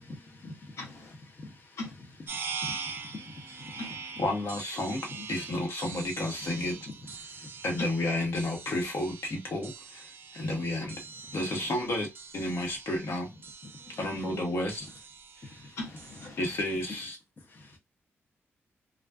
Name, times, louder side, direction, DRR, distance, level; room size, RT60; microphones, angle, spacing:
voice 1, 0.0-0.8 1.3-1.7 2.4-3.8 7.3-7.5 15.4-15.8 17.5-17.7, left 2 dB, 40° left, 0.7 m, -46 dB
voice 2, 0.8-1.2 1.8-1.9 3.8-4.0 7.8-7.9 15.8-16.6, left 2 dB, 90° left, 0.7 m, -40 dB
sound 1, 2.3-16.3, right 5 dB, 50° right, 0.4 m, -43 dB
voice 3, 4.2-6.8 7.6-11.0 11.3-12.1 12.3-13.3 14.0-14.9 15.4-15.5 16.4-17.2, left 1 dB, 65° left, 1.1 m, -31 dB
2.4 x 2.3 x 2.3 m
cardioid pair, 100°, 5 cm